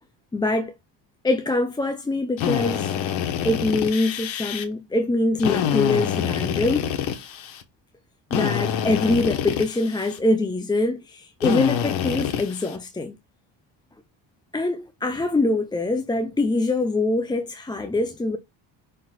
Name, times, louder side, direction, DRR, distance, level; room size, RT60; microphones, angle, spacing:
voice 1, 0.3-0.7 1.2-3.0 3.4-6.9 8.3-13.2 14.5-18.4, left 2 dB, 10° left, 0.5 m, -24 dB
Drill, 2.4-4.6 5.4-7.6 8.3-10.2 11.4-12.8, left 9 dB, 80° left, 1.5 m, -26 dB
5.4 x 4.3 x 4.1 m
cardioid pair, 135°, 46 cm